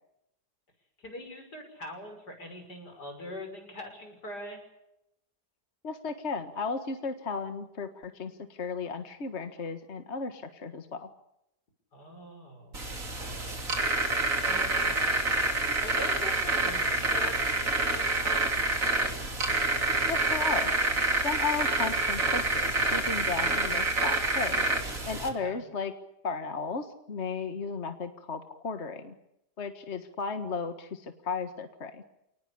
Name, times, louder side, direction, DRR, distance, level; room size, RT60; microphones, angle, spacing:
voice 1, 1.0-4.6 11.9-13.6 14.4-15.0 15.8-19.1 25.4-25.6, left 1 dB, 85° left, 4 dB, 6.8 m, -43 dB
voice 2, 5.8-11.1 20.1-20.7 21.2-24.6 25.1-25.9 26.2-29.1 29.6-32.0, left 5 dB, 45° left, 8 dB, 1.8 m, -35 dB
sound 1, 12.7-25.3, right 2 dB, 55° right, 3.6 m, -27 dB
28.5 x 19.5 x 8.5 m, 0.85 s
omnidirectional pair, 1.7 m